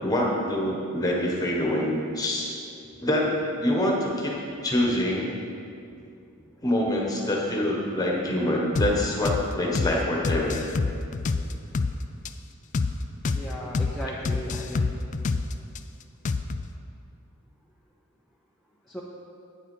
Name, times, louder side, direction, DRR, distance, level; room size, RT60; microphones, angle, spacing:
voice 1, 0.0-2.5 3.0-4.3 4.6-5.3 6.6-10.6, left 1 dB, 15° left, -2 dB, 1.4 m, -25 dB
sound 1, 8.8-8.9 9.3-9.4 9.8-9.9 10.2-11.9 12.3-12.4 12.7-12.9 13.2-13.4 13.7-13.9 14.3-15.8 16.3-16.7, left 4 dB, 35° left, 0.3 m, -26 dB
voice 2, 13.3-14.9 18.9-19.0, equal, ahead, -5 dB, 0.6 m, -36 dB
9.1 x 6.9 x 5.4 m, 2.5 s
head